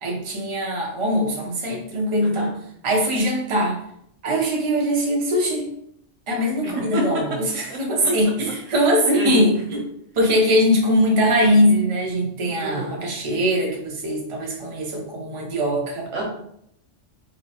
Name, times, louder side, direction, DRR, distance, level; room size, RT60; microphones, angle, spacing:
voice 1, 0.0-2.5 2.8-3.8 4.2-5.7 6.3-9.8 10.1-16.1, equal, 30° right, -1 dB, 0.6 m, -21 dB
voice 2, 2.2-2.5 6.6-7.0 7.7-7.8 9.1-9.4 12.6-13.0 16.1-16.2, right 2 dB, 85° right, 0 dB, 1.2 m, -29 dB
4.0 x 2.1 x 2.8 m, 0.72 s
omnidirectional pair, 1.3 m